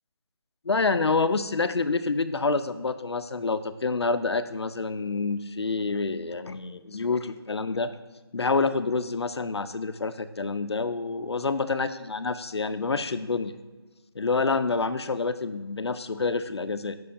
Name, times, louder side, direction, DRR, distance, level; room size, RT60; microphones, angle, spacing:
voice 1, 0.7-7.9 8.3-13.6 14.2-17.0, left 4 dB, 80° left, 12 dB, 0.5 m, -27 dB
8.5 x 6.2 x 2.8 m, 1.2 s
figure-of-eight pair, 180°, 14 cm